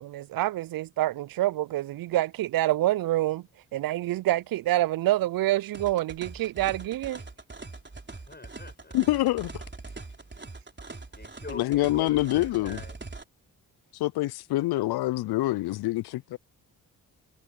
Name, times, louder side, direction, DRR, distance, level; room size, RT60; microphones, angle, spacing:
voice 1, 0.0-3.5 3.7-7.2, right 15 dB, 55° right, 0.5 m, -27 dB
sound 1, 5.7-13.2, right 3 dB, 25° right, 3.9 m, -42 dB
voice 2, 8.1-9.0 11.2-13.0, left 3 dB, 25° left, 5.2 m, -44 dB
voice 3, 8.9-9.6 11.5-12.8 13.9-16.4, left 17 dB, 65° left, 0.6 m, -26 dB
hypercardioid pair, 45°, 41 cm